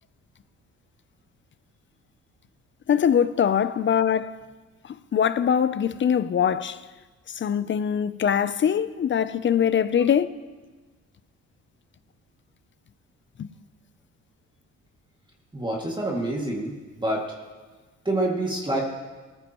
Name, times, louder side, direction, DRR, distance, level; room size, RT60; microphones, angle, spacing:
voice 1, 2.9-4.4 4.8-6.8 7.3-10.3 13.4-13.5, left 8 dB, 40° left, 0.6 m, -22 dB
voice 2, 15.5-17.3 18.0-18.8, right 1 dB, 15° right, 2.3 m, -27 dB
19.0 x 14.0 x 3.1 m
cardioid pair, 90°, 30 cm